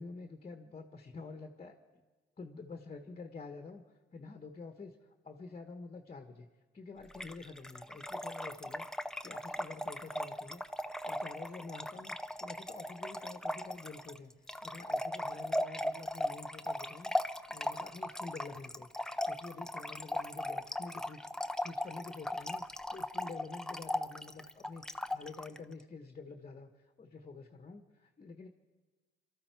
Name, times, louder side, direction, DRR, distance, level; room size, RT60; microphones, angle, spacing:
voice 1, 0.0-1.8 2.4-6.5 6.7-10.6 10.9-18.9 19.2-28.5, left 4 dB, 30° left, 6 dB, 1.2 m, -48 dB
Trickle dribble / Fill (with liquid), 7.1-25.6, left 1 dB, 5° left, 0.6 m, -38 dB
23.0 x 13.5 x 4.7 m, 1.3 s
cardioid pair, 90°, 20 cm